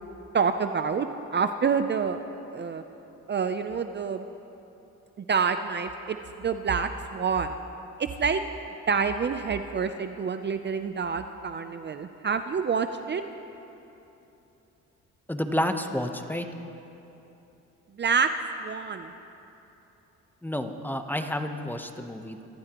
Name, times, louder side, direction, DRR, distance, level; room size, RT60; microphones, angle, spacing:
voice 1, 0.3-2.2 2.5-2.8 3.3-4.2 5.2-7.6 8.0-8.4 8.9-13.2 18.0-18.3 18.6-19.1, right 6 dB, 35° right, 8 dB, 0.6 m, -27 dB
voice 2, 15.3-16.5 20.4-22.4, left 1 dB, 5° left, 6 dB, 0.9 m, -30 dB
24.0 x 15.0 x 3.0 m, 3.0 s
cardioid pair, 90°, 30 cm